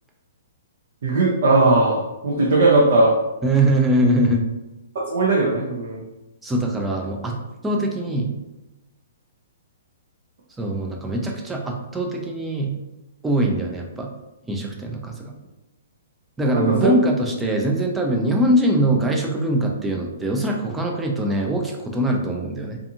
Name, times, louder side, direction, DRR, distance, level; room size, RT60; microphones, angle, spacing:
voice 1, 1.0-3.1 5.1-6.0 16.5-16.9, right 2 dB, 65° right, -3 dB, 0.5 m, -18 dB
voice 2, 3.4-4.4 6.4-7.4 7.6-8.3 10.6-12.7 13.2-14.1 14.5-15.3 16.4-22.8, right 1 dB, 10° right, 1 dB, 0.4 m, -22 dB
2.4 x 2.4 x 2.7 m, 0.99 s
hypercardioid pair, 145°, 0 cm